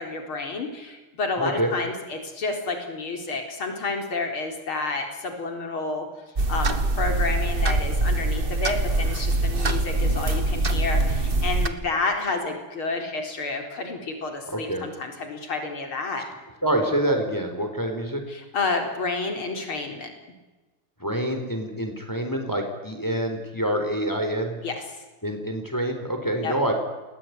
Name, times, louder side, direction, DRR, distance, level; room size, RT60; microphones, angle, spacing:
voice 1, 0.0-6.1 6.5-16.2 18.3-20.1 24.6-24.8 26.4-26.5, left 3 dB, 75° left, 4 dB, 4.9 m, -30 dB
voice 2, 1.4-1.7 14.5-14.9 16.6-18.2 21.0-24.6 25.2-26.7, right 1 dB, 10° left, 4 dB, 4.3 m, -26 dB
sound 1, 6.4-11.7, right 2 dB, 25° right, 1.7 m, -23 dB
29.5 x 20.5 x 9.8 m, 1.2 s
omnidirectional pair, 2.3 m